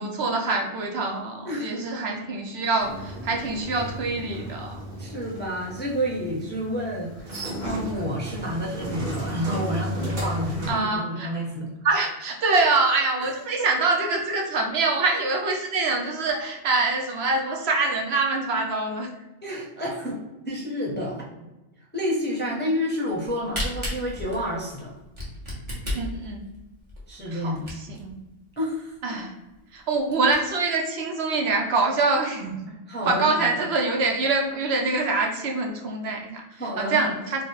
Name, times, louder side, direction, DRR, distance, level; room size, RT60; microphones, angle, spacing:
voice 1, 0.0-4.8 10.7-11.3 11.8-19.1 25.9-26.4 27.3-28.1 29.0-29.3 29.7-32.6 33.1-36.4 36.8-37.4, right 3 dB, 65° right, 1 dB, 0.8 m, -25 dB
voice 2, 1.4-1.9 5.0-11.7 13.2-13.3 13.6-13.7 19.4-20.2 20.5-21.3 21.9-24.9 27.1-27.7 28.6-29.2 32.9-33.5 36.6-37.1, equal, 10° left, -5 dB, 0.5 m, -29 dB
sound 1, 2.8-10.7, equal, 50° right, 1.2 m, -34 dB
Camera, 23.1-28.1 28.6-28.7 28.9-29.0 29.5-29.6 30.0-30.3, left 1 dB, 25° right, 1.2 m, -33 dB
3.2 x 2.3 x 4.3 m, 1.0 s
omnidirectional pair, 1.2 m